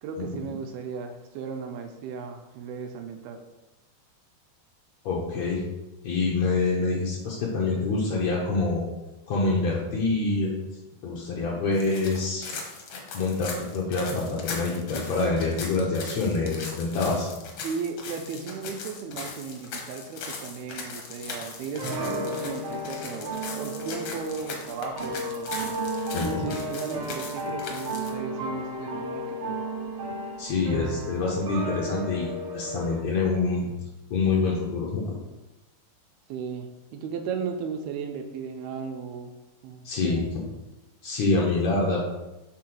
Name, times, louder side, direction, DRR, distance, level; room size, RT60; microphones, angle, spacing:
voice 1, 0.0-3.4 17.6-23.3 23.6-25.5 26.2-29.5 36.3-39.3 39.6-40.3, right 5 dB, 80° right, 4 dB, 2.4 m, -35 dB
voice 2, 5.0-5.6 6.0-8.8 9.3-10.5 11.0-12.5 13.1-17.3 26.1-26.4 30.4-33.7 34.1-35.2 39.8-40.3 41.0-42.1, left 3 dB, 90° left, -3 dB, 1.5 m, -26 dB
sound 1, 11.7-28.1, left 4 dB, 75° left, 1.5 m, -39 dB
sound 2, 21.8-33.0, right 1 dB, 65° right, 1.5 m, -33 dB
6.3 x 3.8 x 6.1 m, 1.0 s
omnidirectional pair, 4.6 m